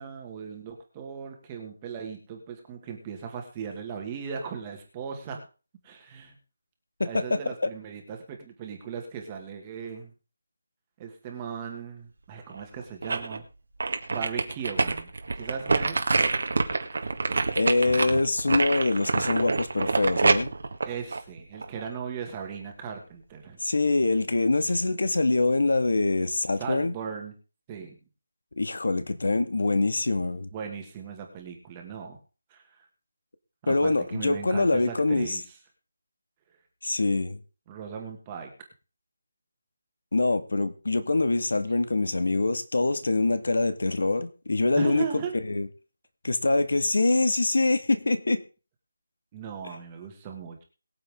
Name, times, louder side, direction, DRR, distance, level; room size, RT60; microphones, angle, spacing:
voice 1, 0.0-5.4 5.8-6.4 7.0-10.1 11.0-13.4 14.1-15.1 15.4-16.1 20.8-23.6 26.6-27.3 27.7-28.0 30.5-32.2 32.5-32.9 33.6-35.6 37.7-38.5 44.8-45.3 49.3-50.6, right 6 dB, 15° right, 2.0 m, -37 dB
voice 2, 7.0-7.7 17.6-20.5 23.6-26.9 28.6-30.5 33.7-35.4 36.8-37.4 40.1-45.0 45.5-45.7 46.2-48.4, left 2 dB, 75° left, 1.9 m, -24 dB
sound 1, 12.5-13.4 13.8-21.9 22.3-22.4, right 3 dB, 55° right, 1.9 m, -26 dB
22.5 x 7.6 x 3.7 m
figure-of-eight pair, 175°, 0 cm